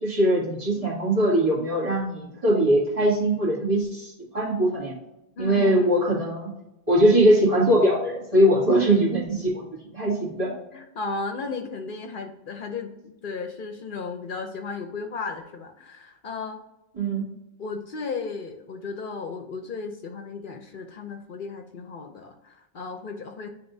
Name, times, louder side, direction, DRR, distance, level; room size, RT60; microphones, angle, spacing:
voice 1, 0.0-4.9 5.4-6.5 6.9-9.7 9.9-10.5 17.0-17.2, right 1 dB, 35° right, -6 dB, 2.2 m, -21 dB
voice 2, 5.4-6.2 10.7-16.6 17.6-23.5, left 4 dB, 60° left, 5 dB, 0.8 m, -35 dB
9.9 x 3.6 x 2.7 m, 0.90 s
omnidirectional pair, 1.0 m